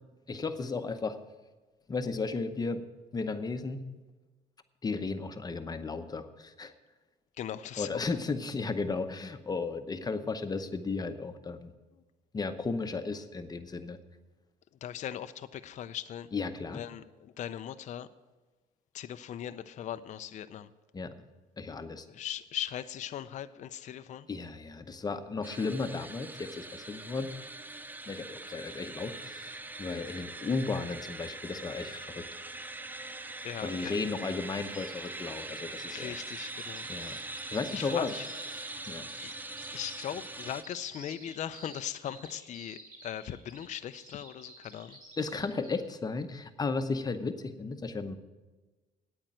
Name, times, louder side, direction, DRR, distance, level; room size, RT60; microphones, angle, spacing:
voice 1, 0.3-1.2 1.9-2.8 3.1-3.8 4.8-6.7 7.8-11.7 12.3-14.0 16.3-16.8 20.9-21.1 21.6-22.1 24.3-27.3 28.1-32.2 33.6-36.1 36.9-37.2 37.5-38.1 38.5-39.1 45.2-48.2, left 4 dB, 25° left, 9 dB, 0.8 m, -34 dB
voice 2, 7.4-7.9 14.8-16.3 16.7-18.1 18.9-20.7 22.1-24.3 33.4-34.0 35.9-36.8 37.3-38.3 39.2-39.3 39.7-45.0, left 10 dB, 45° left, 11 dB, 0.5 m, -39 dB
sound 1, 25.4-40.6, right 2 dB, 10° right, 0.5 m, -42 dB
Bird vocalization bird call bird song, 34.7-45.8, right 2 dB, 55° right, 4.6 m, -52 dB
9.0 x 9.0 x 7.4 m, 1.2 s
cardioid pair, 110°, 17 cm